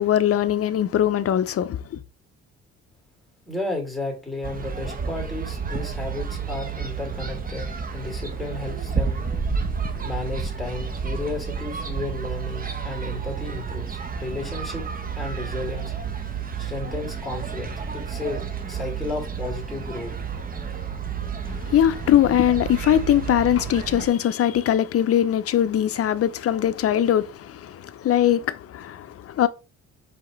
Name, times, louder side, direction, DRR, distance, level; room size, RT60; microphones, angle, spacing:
voice 1, 0.0-2.0 21.5-29.5, left 11 dB, 50° left, 0.5 m, -21 dB
voice 2, 3.5-9.3 10.0-14.9 15.2-15.9 16.6-18.4 18.7-20.1, left 3 dB, ahead, 2.2 m, -33 dB
sound 1, 4.4-24.1, right 6 dB, 30° right, 0.8 m, -31 dB
4.8 x 3.5 x 3.1 m
cardioid pair, 90°, 30 cm